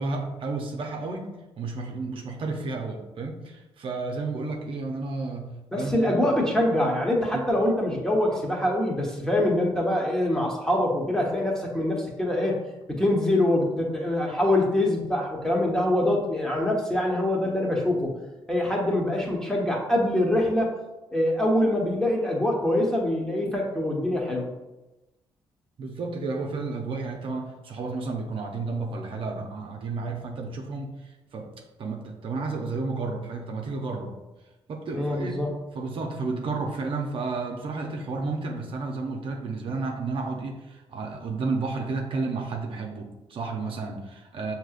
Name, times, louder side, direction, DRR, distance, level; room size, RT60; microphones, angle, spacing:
voice 1, 0.0-6.2 7.3-7.5 25.8-31.5 31.8-34.2 34.7-35.3 35.7-44.5, right 3 dB, 60° right, 1 dB, 0.7 m, -32 dB
voice 2, 5.7-12.6 12.9-18.1 18.5-20.7 21.1-24.5 34.9-35.5, left 1 dB, 5° left, -1 dB, 1.2 m, -24 dB
6.1 x 2.9 x 2.5 m, 1.0 s
supercardioid pair, 65°, 10 cm